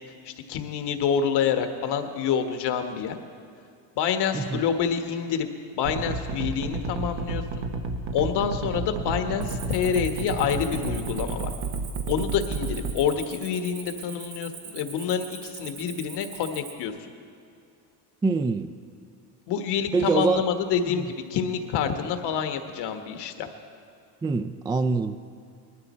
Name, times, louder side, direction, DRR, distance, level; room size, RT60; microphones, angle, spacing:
voice 1, 0.2-3.2 4.0-5.5 5.7-7.7 8.1-11.5 12.1-16.9 19.5-23.5, left 7 dB, 70° left, 7 dB, 1.5 m, -27 dB
sound 1, 5.8-12.9, right 3 dB, 85° right, 1.2 m, -30 dB
Cricket, 9.4-16.8, right 6 dB, 65° right, 2.5 m, -42 dB
voice 2, 18.2-18.7 19.9-20.5 20.9-21.0 24.2-25.2, right 4 dB, 10° right, 10 dB, 0.3 m, -25 dB
20.0 x 13.0 x 4.4 m, 2.5 s
cardioid pair, 105°, 42 cm